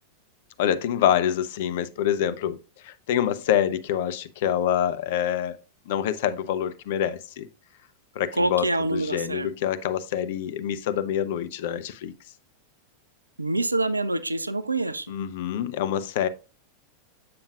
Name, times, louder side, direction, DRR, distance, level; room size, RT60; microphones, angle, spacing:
voice 1, 0.6-2.6 2.8-5.6 5.9-7.5 8.1-8.7 8.9-12.1 15.1-16.3, left 10 dB, 55° left, 0.5 m, -26 dB
voice 2, 8.4-9.5 13.4-15.1, right 2 dB, 80° right, 0.4 m, -26 dB
7.6 x 7.0 x 2.4 m
figure-of-eight pair, 90°, 0 cm